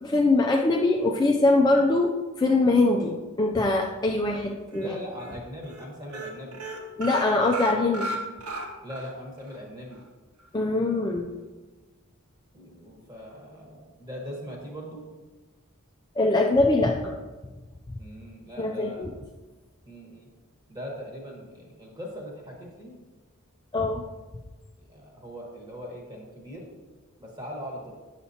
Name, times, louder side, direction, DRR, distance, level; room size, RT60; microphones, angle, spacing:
voice 1, 0.0-4.9 7.0-8.1 10.5-11.3 16.2-17.1 18.6-19.1 23.7-24.0, left 2 dB, 20° left, 0 dB, 0.4 m, -23 dB
sound 1, 4.3-4.9 5.2-5.4 5.6-5.8 6.1-9.1 9.5-9.6 9.9-10.0, right 1 dB, 75° right, 1.0 m, -35 dB
voice 2, 4.8-6.6 8.8-10.0 12.5-15.0 18.0-19.1 19.8-20.3 20.7-22.9 24.9-26.7 27.2-27.9, equal, 20° right, -1 dB, 1.3 m, -40 dB
8.6 x 6.5 x 2.8 m, 1.3 s
head